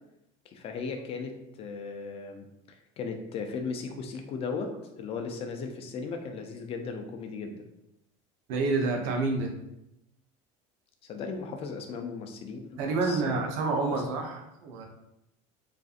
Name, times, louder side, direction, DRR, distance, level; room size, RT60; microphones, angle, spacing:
voice 1, 0.5-7.6 11.1-13.5 13.9-14.0, left 4 dB, 40° left, 5 dB, 0.4 m, -37 dB
voice 2, 8.5-9.5 12.8-14.9, right 3 dB, 80° right, 2 dB, 0.6 m, -28 dB
2.5 x 2.4 x 2.4 m, 0.84 s
supercardioid pair, 125°, 16 cm